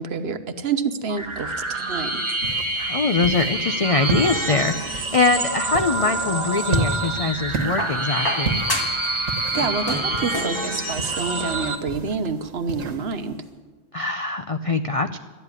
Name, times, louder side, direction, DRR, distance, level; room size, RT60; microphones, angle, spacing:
voice 1, 0.0-2.2 9.5-13.4, right 5 dB, 55° right, 9 dB, 1.1 m, -28 dB
sound 1, 1.1-11.7, right 2 dB, 25° right, 1.3 m, -27 dB
sound 2, 2.4-13.4, right 3 dB, 90° right, 1.6 m, -33 dB
voice 2, 2.8-8.6 13.9-15.2, left 3 dB, 50° left, 8 dB, 0.4 m, -23 dB
sound 3, 6.0-7.0 7.8-9.1 9.4-10.6 11.7-11.8, left 1 dB, 15° left, 1.9 m, -30 dB
13.0 x 9.9 x 9.7 m, 1.3 s
omnidirectional pair, 1.3 m